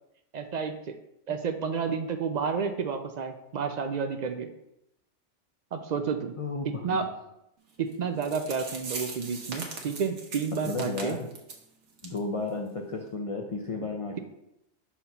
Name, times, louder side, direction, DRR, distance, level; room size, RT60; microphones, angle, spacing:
voice 1, 0.3-1.0 1.3-4.5 5.7-6.3 6.8-7.1 7.8-11.2, right 6 dB, 60° right, 7 dB, 0.4 m, -30 dB
voice 2, 6.4-6.8 10.6-11.3 12.0-14.2, left 3 dB, 45° left, 1 dB, 0.5 m, -33 dB
sound 1, 7.9-8.0 8.2-11.6 12.0-12.2 12.5-12.6 13.1-13.2, right 4 dB, 85° right, 1.3 m, -40 dB
5.8 x 2.9 x 5.6 m, 0.84 s
omnidirectional pair, 1.2 m